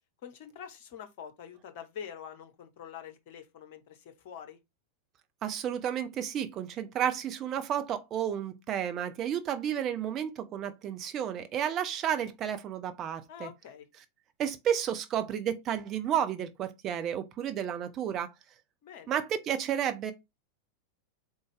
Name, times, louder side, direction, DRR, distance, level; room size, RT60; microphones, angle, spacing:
voice 1, 0.2-4.6 13.3-13.9 18.8-19.1, left 8 dB, 50° left, 0.9 m, -45 dB
voice 2, 5.4-13.5 14.4-18.3 19.1-20.1, right 9 dB, 30° right, 0.6 m, -32 dB
4.1 x 3.3 x 3.4 m
figure-of-eight pair, 90°, 0 cm